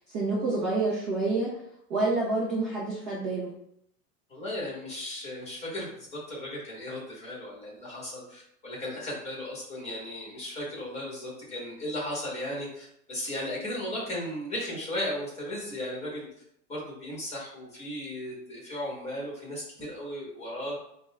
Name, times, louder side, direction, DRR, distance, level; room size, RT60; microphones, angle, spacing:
voice 1, 0.0-1.5 1.9-3.5, right 3 dB, 20° right, -6 dB, 0.3 m, -28 dB
voice 2, 4.3-16.3 16.7-20.8, left 1 dB, 15° left, -4 dB, 1.1 m, -36 dB
5.2 x 2.1 x 2.3 m, 0.73 s
supercardioid pair, 140°, 47 cm